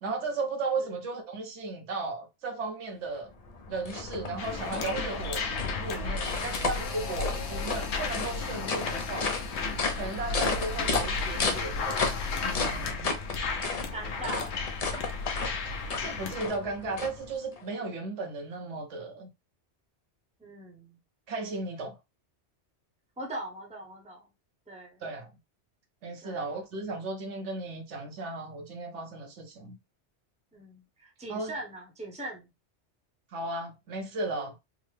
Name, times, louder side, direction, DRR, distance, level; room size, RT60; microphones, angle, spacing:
voice 1, 0.0-3.3 3.7-5.4 5.8-9.3 9.9-13.1 15.9-19.3 21.3-21.9 25.0-25.3 26.0-29.8 31.3-31.5 33.3-34.5, right 3 dB, 80° right, 1.1 m, -35 dB
sound 1, 3.2-17.6, left 4 dB, 45° left, 0.5 m, -34 dB
sound 2, 4.4-16.5, left 4 dB, 70° left, 0.9 m, -34 dB
voice 2, 13.9-14.6 20.4-21.0 23.2-24.3 24.7-25.0 26.2-26.4 30.5-32.5, right 1 dB, 5° right, 0.7 m, -41 dB
3.6 x 2.0 x 3.2 m
omnidirectional pair, 1.2 m